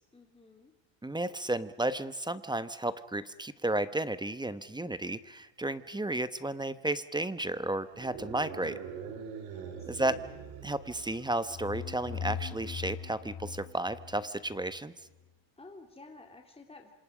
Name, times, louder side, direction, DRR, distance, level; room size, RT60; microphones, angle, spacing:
voice 1, 0.1-0.7 9.5-10.2 15.6-16.9, left 3 dB, 10° left, 3 dB, 2.7 m, -52 dB
voice 2, 1.0-8.8 9.9-10.2 10.6-14.9, right 2 dB, 10° right, 13 dB, 1.1 m, -33 dB
sound 1, 7.9-11.5, right 6 dB, 90° right, 3.6 m, -43 dB
sound 2, 11.2-14.8, left 7 dB, 30° left, 1.7 m, -40 dB
28.0 x 26.5 x 5.1 m, 1.1 s
cardioid pair, 105°, 50 cm